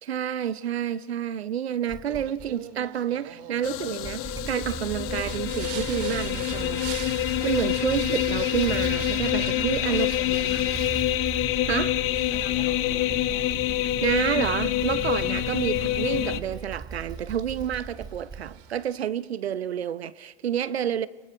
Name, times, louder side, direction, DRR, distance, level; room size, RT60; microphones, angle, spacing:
voice 1, 0.0-6.9 7.4-10.1 11.7-12.0 14.0-21.1, right 9 dB, 80° right, 0.8 m, -29 dB
Motorcycle / Engine starting, 1.9-2.5 3.9-18.8, right 5 dB, 10° right, 0.7 m, -38 dB
Singing, 2.1-19.0, right 12 dB, 60° right, 1.9 m, -44 dB
sound 1, 3.6-16.4, left 15 dB, 45° left, 1.1 m, -27 dB
voice 2, 9.4-10.9 12.3-13.1, left 3 dB, 70° left, 6.0 m, -43 dB
27.5 x 25.5 x 5.1 m
figure-of-eight pair, 85°, 31 cm